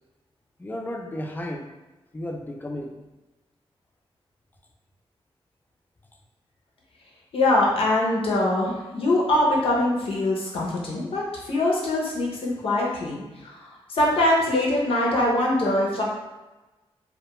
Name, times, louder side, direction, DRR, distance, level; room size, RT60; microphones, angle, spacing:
voice 1, 0.6-1.7 2.1-3.0, left 1 dB, 20° left, 2 dB, 0.3 m, -33 dB
voice 2, 7.3-16.0, left 1 dB, 65° left, -3 dB, 0.6 m, -23 dB
2.2 x 2.1 x 2.9 m, 1.1 s
wide cardioid pair, 100°, 10 cm